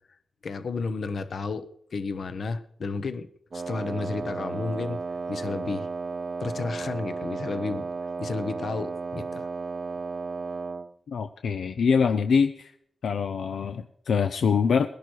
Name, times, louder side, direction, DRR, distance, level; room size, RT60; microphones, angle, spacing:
voice 1, 0.4-3.3 3.5-5.0 5.3-5.9 6.4-7.9 8.2-9.5, left 4 dB, 70° left, 12 dB, 1.0 m, -32 dB
Wind instrument woodwind instrument, 3.5-10.9, right 4 dB, 50° right, 0.6 m, -34 dB
voice 2, 11.1-12.7 13.0-14.9, left 6 dB, 90° left, 9 dB, 0.6 m, -24 dB
20.0 x 11.0 x 4.7 m, 0.69 s
wide cardioid pair, 90°, 0 cm